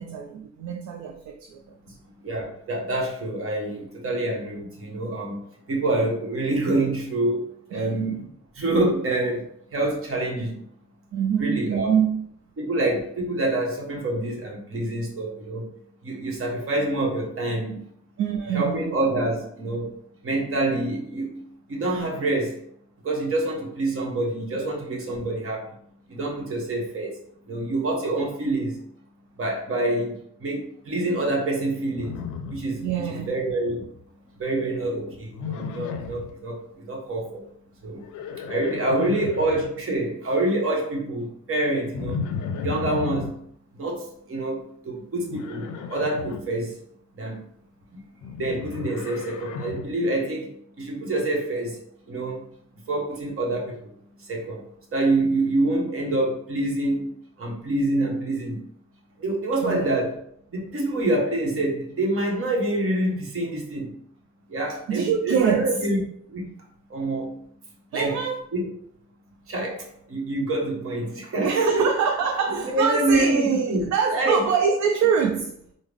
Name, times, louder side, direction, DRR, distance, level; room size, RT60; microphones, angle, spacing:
voice 1, 0.0-1.6 7.7-8.1 11.1-12.3 18.2-18.9 32.8-33.3 39.0-39.2 59.6-60.0 64.9-65.7 67.9-68.4 71.4-75.6, right 7 dB, 65° right, 0.5 m, -25 dB
voice 2, 2.2-5.4 5.7-8.3 8.5-10.6 11.4-11.9 12.6-15.7 16.0-17.8 18.5-19.9 20.2-22.6 23.0-25.7 26.1-27.2 27.5-28.8 29.4-32.2 32.5-33.8 34.4-37.4 37.8-38.1 38.4-42.2 42.6-43.4 43.7-46.8 47.2-47.4 48.4-50.5 50.8-51.8 52.1-52.4 52.9-53.9 54.2-54.7 54.9-58.7 59.2-60.2 60.5-63.9 64.5-66.0 66.3-66.5 66.9-67.4 67.9-68.2 68.5-68.7 69.5-71.9 72.5-74.5, right 2 dB, 45° right, 1.1 m, -26 dB
Livestock farm animals working animals, 32.0-33.2 33.5-34.0 35.3-36.3 37.9-39.6 41.9-43.3 45.3-46.4 48.2-49.9, left 6 dB, 75° left, 0.5 m, -34 dB
3.6 x 2.1 x 3.3 m
cardioid pair, 90°, 30 cm